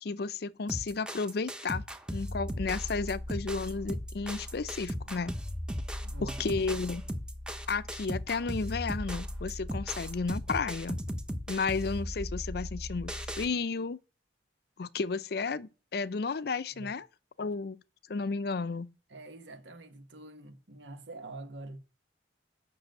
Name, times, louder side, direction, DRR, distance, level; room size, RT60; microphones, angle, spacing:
voice 1, 0.0-1.8 2.1-5.4 6.2-7.1 7.7-11.0 11.5-14.0 14.8-17.0 17.4-17.8 18.1-18.9, left 4 dB, 60° left, 0.5 m, -33 dB
sound 1, 0.7-13.5, equal, 5° right, 0.9 m, -37 dB
voice 2, 6.0-6.4 16.7-16.9 17.4-17.5 19.1-21.8, right 2 dB, 80° right, 1.6 m, -45 dB
8.8 x 6.2 x 8.0 m
head